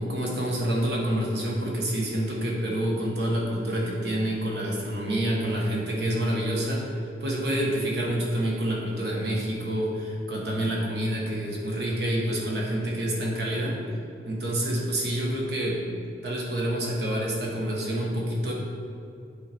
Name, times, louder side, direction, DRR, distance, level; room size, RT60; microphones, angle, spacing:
voice 1, 0.0-13.8 14.2-15.8 16.2-18.5, right 1 dB, 65° right, -3 dB, 1.4 m, -27 dB
9.0 x 4.9 x 4.4 m, 2.6 s
head